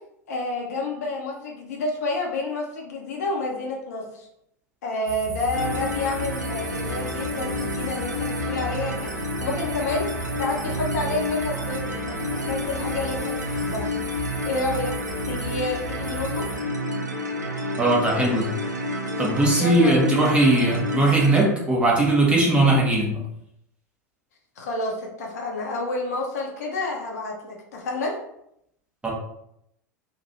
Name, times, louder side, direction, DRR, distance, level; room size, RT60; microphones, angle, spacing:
voice 1, 0.3-4.3 4.8-9.1 9.4-10.1 10.4-13.9 14.4-14.9 15.2-16.4 19.5-20.1 24.6-28.1, left 2 dB, 65° left, -1 dB, 0.9 m, -29 dB
sound 1, 5.0-16.6, left 2 dB, 65° right, 1.2 m, -36 dB
sound 2, 5.5-21.4, left 1 dB, 85° right, 0.5 m, -29 dB
voice 2, 17.8-18.5 19.2-23.2 29.0-29.1, right 2 dB, 10° right, -3 dB, 1.2 m, -19 dB
3.1 x 2.5 x 4.0 m, 0.76 s
figure-of-eight pair, 85°, 9 cm